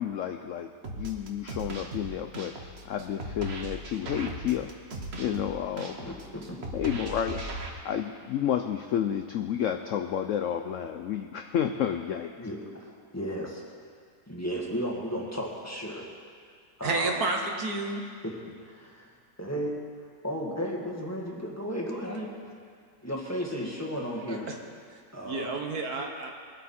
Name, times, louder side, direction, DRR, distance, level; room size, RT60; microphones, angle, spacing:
voice 1, 0.0-4.7 5.1-6.1 6.7-7.4 7.8-12.3, left 9 dB, 75° left, 6 dB, 0.7 m, -31 dB
sound 1, 0.8-7.7, right 2 dB, 40° right, 1.2 m, -38 dB
voice 2, 6.0-6.6 12.4-12.9 13.1-13.6 14.3-16.1 16.8-17.1 18.2-18.3 18.6-19.1 19.4-19.8 20.2-22.3 23.0-24.5 25.1-25.5, equal, 10° left, -3 dB, 1.6 m, -34 dB
voice 3, 16.8-18.0 24.3-24.6 25.2-26.3, right 3 dB, 60° right, 2 dB, 1.6 m, -30 dB
21.0 x 8.3 x 4.3 m, 2.1 s
omnidirectional pair, 1.9 m